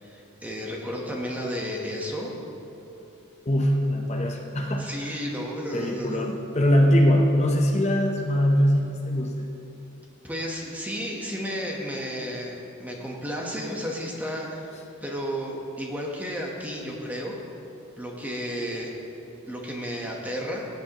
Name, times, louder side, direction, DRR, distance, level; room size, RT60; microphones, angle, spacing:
voice 1, 0.0-2.3 4.8-6.3 10.2-17.4 18.0-18.9 19.5-20.7, equal, 5° right, -1 dB, 1.0 m, -33 dB
voice 2, 3.5-5.1 5.7-9.5, equal, 30° left, 2 dB, 0.7 m, -22 dB
17.0 x 9.1 x 2.9 m, 2.8 s
head